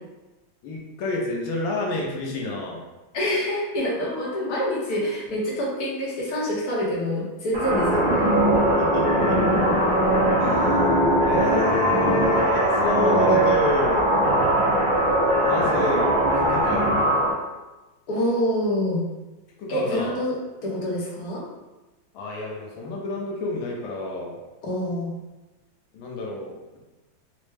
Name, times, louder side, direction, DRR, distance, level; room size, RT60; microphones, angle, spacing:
voice 1, 0.6-2.8 8.8-9.4 10.4-14.1 15.4-16.9 19.6-20.2 22.1-24.3 25.9-26.8, left 2 dB, 85° left, -2 dB, 1.5 m, -29 dB
voice 2, 3.1-8.4 18.1-19.1 19.7-21.4 24.6-25.2, equal, 60° left, -4 dB, 1.2 m, -26 dB
sound 1, 7.5-17.3, right 1 dB, 50° right, 1.0 m, -20 dB
4.4 x 2.0 x 3.2 m, 1.1 s
omnidirectional pair, 2.1 m